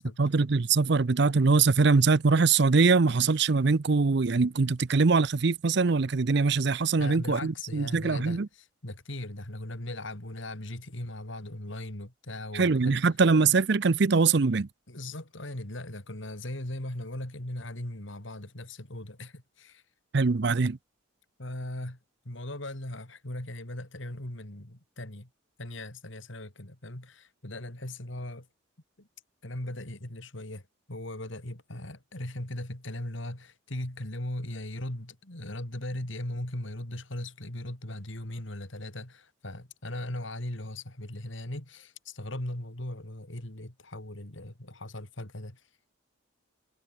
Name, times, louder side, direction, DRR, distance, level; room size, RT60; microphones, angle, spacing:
voice 1, 0.0-8.5 12.5-14.7 20.1-20.8, right 4 dB, 55° right, 0.6 m, -23 dB
voice 2, 7.0-13.0 14.9-19.8 21.4-22.0 22.3-25.3 25.6-28.5 29.0-29.1 29.4-45.6, left 1 dB, 70° left, 3.5 m, -38 dB
head